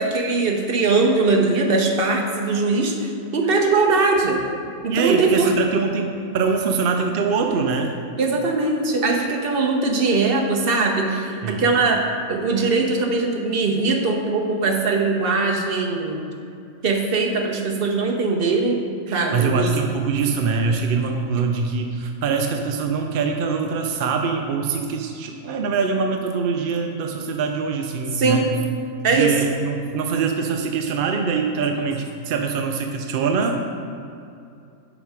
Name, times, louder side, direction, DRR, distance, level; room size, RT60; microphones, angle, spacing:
voice 1, 0.0-4.4 4.9-5.5 8.2-12.0 12.3-16.2 16.8-18.8 19.1-19.7 28.1-28.5 29.0-29.3, right 3 dB, 45° right, 1 dB, 0.9 m, -21 dB
voice 2, 4.9-7.9 11.4-11.7 19.1-28.5 29.1-33.7, right 5 dB, 70° right, 3 dB, 0.5 m, -23 dB
7.0 x 5.4 x 4.7 m, 2.5 s
omnidirectional pair, 1.5 m